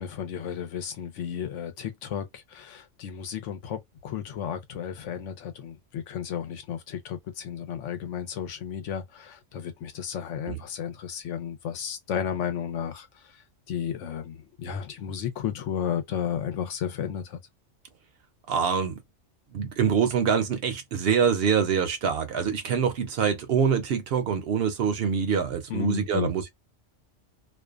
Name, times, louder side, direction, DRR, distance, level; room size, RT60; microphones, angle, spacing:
voice 1, 0.0-13.1 13.7-17.4 25.7-26.3, left 8 dB, 80° left, 1.0 m, -33 dB
voice 2, 18.5-19.0 19.5-26.5, right 7 dB, 65° right, 0.7 m, -25 dB
2.5 x 2.1 x 2.3 m
omnidirectional pair, 1.2 m